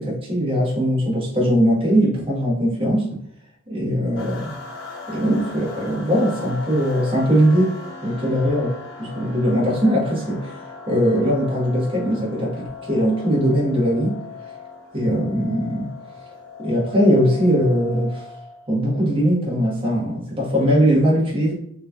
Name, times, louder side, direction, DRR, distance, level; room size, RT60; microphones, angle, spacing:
voice 1, 0.0-3.1 3.7-4.5 5.1-7.8 8.0-8.7 9.0-10.6 10.9-14.2 14.9-15.9 16.6-18.2 18.7-21.5, equal, 25° right, -5 dB, 1.3 m, -20 dB
sound 1, 4.2-18.7, left 4 dB, 60° left, 1.0 m, -38 dB
3.9 x 3.0 x 2.4 m, 0.69 s
head